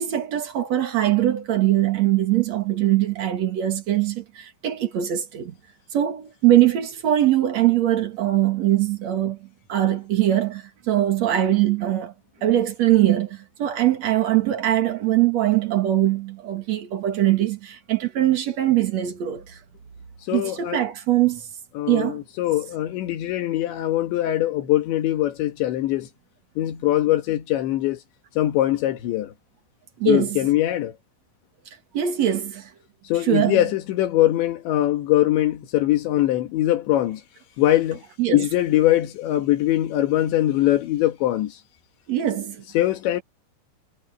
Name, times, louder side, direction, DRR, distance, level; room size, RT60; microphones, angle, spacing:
voice 1, 0.0-5.5 5.9-12.1 12.4-19.6 20.3-21.5 21.9-22.2 30.0-30.4 31.9-32.7 33.2-33.6 38.2-38.4 42.1-42.6, right 13 dB, 55° right, 1.9 m, -22 dB
voice 2, 20.3-20.8 21.8-26.1 26.6-28.0 28.4-29.3 30.1-30.9 33.1-37.2 37.6-38.0 38.3-41.6 42.8-43.2, left 14 dB, 65° left, 3.6 m, -22 dB
omnidirectional pair, 6.0 m